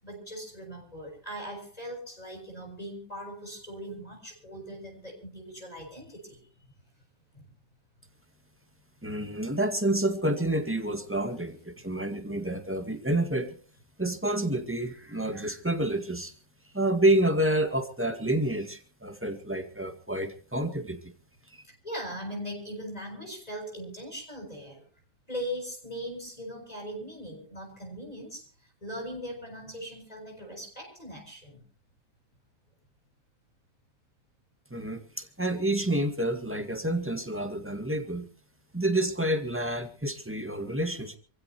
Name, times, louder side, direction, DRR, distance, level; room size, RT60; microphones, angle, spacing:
voice 1, 0.0-6.4 7.3-7.5 21.6-24.9 25.3-28.5 28.8-31.6, equal, 25° left, 0 dB, 7.4 m, -40 dB
voice 2, 9.0-13.5 14.0-16.3 16.7-21.1 21.5-21.6 34.7-38.3 38.7-41.2, right 1 dB, 10° right, 7 dB, 1.9 m, -29 dB
28.0 x 15.5 x 3.0 m, 0.39 s
omnidirectional pair, 1.6 m